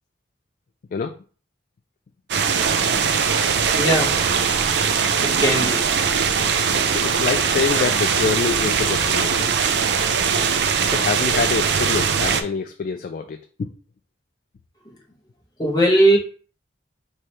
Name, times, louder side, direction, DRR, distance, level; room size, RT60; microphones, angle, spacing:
voice 1, 0.9-1.2 6.4-9.5 10.8-13.7, left 5 dB, 50° left, 6 dB, 0.3 m, -26 dB
sound 1, 2.3-12.4, right 6 dB, 70° right, 0.4 m, -21 dB
voice 2, 3.8-4.2 5.2-5.8 15.6-16.2, right 1 dB, 25° left, -3 dB, 0.9 m, -18 dB
4.8 x 3.2 x 2.9 m, 0.40 s
head